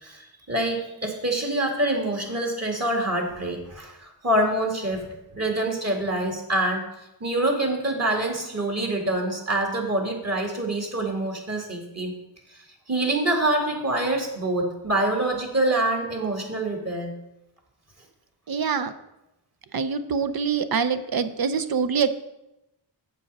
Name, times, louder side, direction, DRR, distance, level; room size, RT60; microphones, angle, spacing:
voice 1, 0.0-6.8 7.2-12.1 12.9-17.1, right 1 dB, 35° right, 1 dB, 2.1 m, -26 dB
voice 2, 18.5-18.9 19.7-22.1, right 6 dB, 55° right, 11 dB, 0.7 m, -25 dB
7.4 x 7.1 x 5.4 m, 0.91 s
wide cardioid pair, 80°, 44 cm